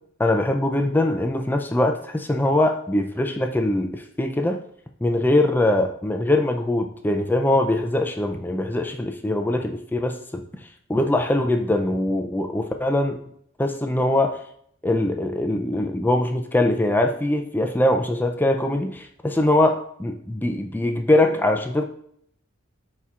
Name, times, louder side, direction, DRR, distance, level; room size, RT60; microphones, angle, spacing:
voice 1, 0.2-4.6 5.0-10.4 10.9-13.2 13.6-14.4 14.8-21.8, left 1 dB, 10° left, 4 dB, 0.4 m, -22 dB
11.0 x 4.3 x 2.4 m, 0.67 s
head